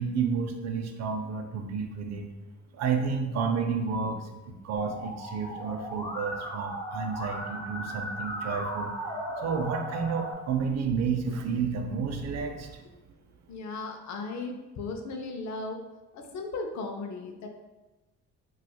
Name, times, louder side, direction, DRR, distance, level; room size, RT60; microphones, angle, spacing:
voice 1, 0.0-2.3 2.7-8.9 9.4-12.8, right 5 dB, 60° right, 5 dB, 0.5 m, -31 dB
Musical instrument, 4.8-10.3, equal, 20° left, 1.0 m, -36 dB
voice 2, 13.5-15.8 16.1-17.5, left 3 dB, 65° left, 4 dB, 0.5 m, -36 dB
4.1 x 2.4 x 2.2 m, 1.1 s
cardioid pair, 90°, 30 cm